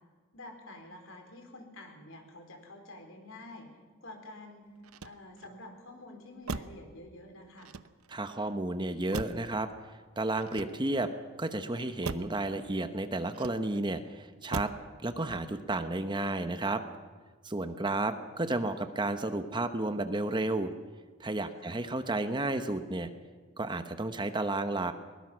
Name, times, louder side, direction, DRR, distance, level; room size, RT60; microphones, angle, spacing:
voice 1, 0.3-3.7 4.0-4.7 5.0-7.7 21.5-21.8, left 2 dB, 65° left, 4 dB, 4.4 m, -48 dB
Motor vehicle (road), 4.8-5.6 6.4-6.9 7.6-8.3 9.1-9.6 10.4-11.1 12.0-12.4 13.3-13.9 14.5-14.9 15.3-15.7, right 4 dB, 90° right, 0.8 m, -40 dB
voice 2, 8.1-9.7 10.2-11.1 11.4-14.7 15.0-16.8 17.4-20.7 21.2-23.1 23.6-24.9, right 2 dB, 20° right, 9 dB, 0.9 m, -32 dB
22.0 x 21.0 x 6.2 m, 1.5 s
head